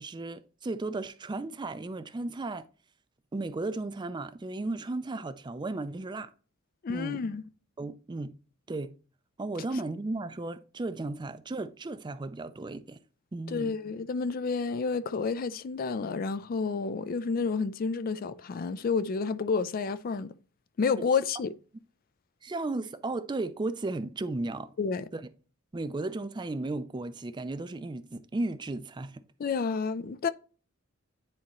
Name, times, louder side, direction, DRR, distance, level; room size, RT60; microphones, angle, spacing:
voice 1, 0.0-2.7 3.3-6.3 6.9-7.2 7.8-8.3 8.7-8.9 9.4-13.0 13.3-13.7 22.4-24.7 25.1-25.2 25.7-29.2, right 2 dB, 20° right, 0.4 m, -35 dB
voice 2, 6.8-7.5 13.5-20.3 20.8-21.5 24.8-25.1 29.4-30.3, left 5 dB, 45° left, 0.4 m, -30 dB
9.7 x 4.1 x 3.0 m
head